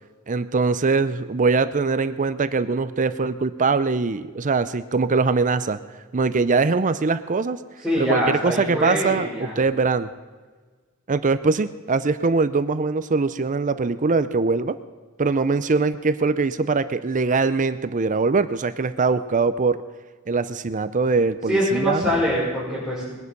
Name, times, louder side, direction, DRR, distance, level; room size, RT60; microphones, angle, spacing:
voice 1, 0.3-5.8 6.1-7.6 8.0-10.1 11.1-14.8 15.2-19.8 20.3-22.0, right 4 dB, 35° right, 13 dB, 0.6 m, -22 dB
voice 2, 7.8-9.5 21.5-23.2, equal, ahead, -11 dB, 6.0 m, -24 dB
21.0 x 11.0 x 5.4 m, 1.4 s
head